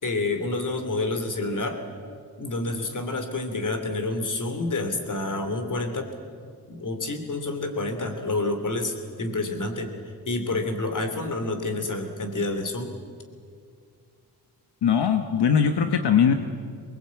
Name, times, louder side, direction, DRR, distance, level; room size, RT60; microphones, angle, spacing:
voice 1, 0.0-1.8 2.4-6.1 6.7-9.9 10.3-12.9, left 2 dB, 50° left, 6 dB, 3.2 m, -28 dB
voice 2, 14.8-16.3, left 7 dB, 85° left, 6 dB, 1.2 m, -20 dB
23.5 x 20.5 x 8.5 m, 2.2 s
cardioid pair, 85°, 39 cm